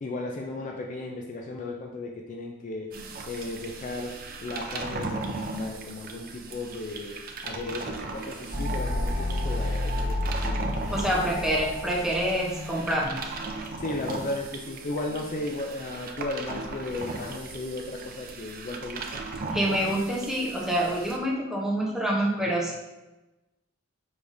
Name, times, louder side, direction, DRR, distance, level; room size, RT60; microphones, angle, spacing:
voice 1, 0.0-2.9 3.3-11.3 13.8-19.2, left 2 dB, 35° left, 1 dB, 0.4 m, -35 dB
sound 1, 2.9-21.2, right 3 dB, 45° right, 0.4 m, -38 dB
sound 2, 8.5-13.6, left 1 dB, 60° right, 1.1 m, -31 dB
voice 2, 10.9-13.2 19.5-22.7, right 1 dB, ahead, -4 dB, 0.7 m, -26 dB
4.8 x 3.4 x 2.6 m, 1.0 s
head